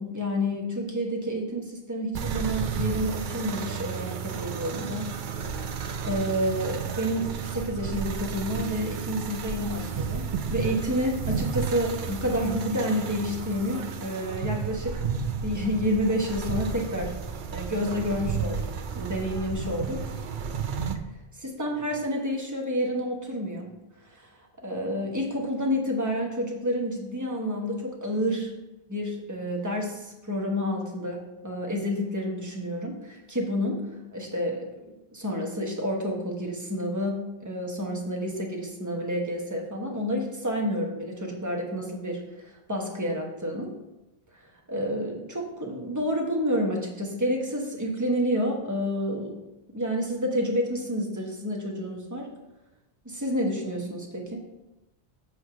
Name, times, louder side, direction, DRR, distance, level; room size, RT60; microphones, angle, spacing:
voice 1, 0.0-5.1 5.4-5.7 6.0-15.0 15.4-17.1 17.5-20.0 21.4-23.7 24.1-24.3 24.6-28.5 28.9-34.6 35.1-43.7 44.7-49.4 49.7-52.3 53.0-54.4, equal, 20° right, 0 dB, 1.1 m, -29 dB
sound 1, 2.1-21.0, right 6 dB, 55° right, 0.7 m, -32 dB
7.6 x 3.1 x 5.9 m, 0.96 s
omnidirectional pair, 1.1 m